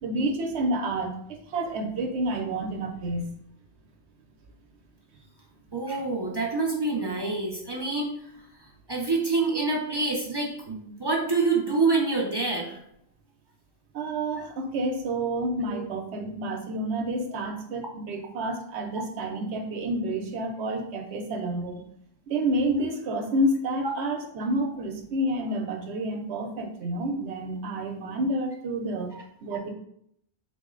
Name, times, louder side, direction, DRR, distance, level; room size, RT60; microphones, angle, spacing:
voice 1, 0.0-3.3 13.9-21.8 22.3-29.1 29.4-29.7, right 1 dB, 90° right, 4 dB, 0.9 m, -29 dB
voice 2, 5.7-8.1 8.9-12.8 15.7-15.8 29.1-29.2, right 3 dB, 35° right, -2 dB, 0.4 m, -26 dB
3.9 x 2.0 x 3.6 m, 0.71 s
omnidirectional pair, 1.1 m